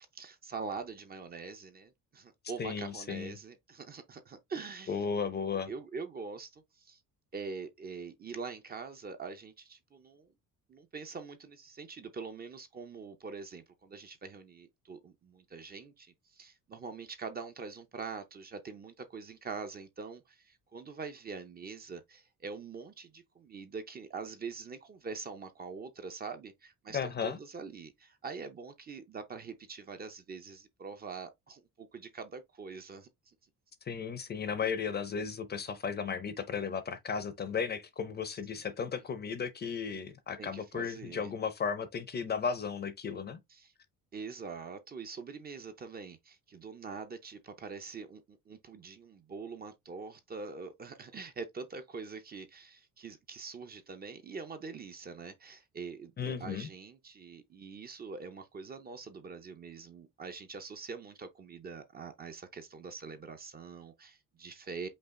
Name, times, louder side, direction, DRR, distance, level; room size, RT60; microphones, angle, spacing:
voice 1, 0.1-5.0 5.5-7.0 7.3-10.3 10.7-33.4 40.4-41.3 43.5-43.7 44.1-64.9, right 5 dB, 30° right, 0.6 m, -44 dB
voice 2, 2.6-3.3 4.9-5.7 26.9-27.4 33.9-43.4 56.2-56.7, left 6 dB, 30° left, 0.6 m, -35 dB
5.4 x 2.4 x 3.6 m
cardioid pair, 160°, 34 cm